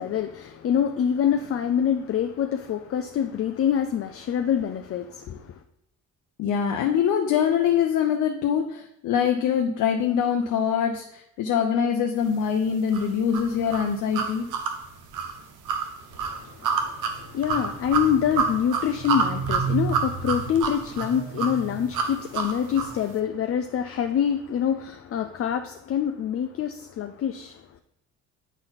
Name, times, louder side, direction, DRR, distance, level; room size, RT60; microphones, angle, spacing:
voice 1, 0.0-5.5 16.2-27.6, left 9 dB, 50° left, 0.5 m, -26 dB
voice 2, 6.4-14.5, left 8 dB, 85° left, 0.7 m, -24 dB
sound 1, 12.9-23.0, right 5 dB, 85° right, 0.9 m, -28 dB
9.2 x 4.1 x 4.0 m
cardioid pair, 90°, 30 cm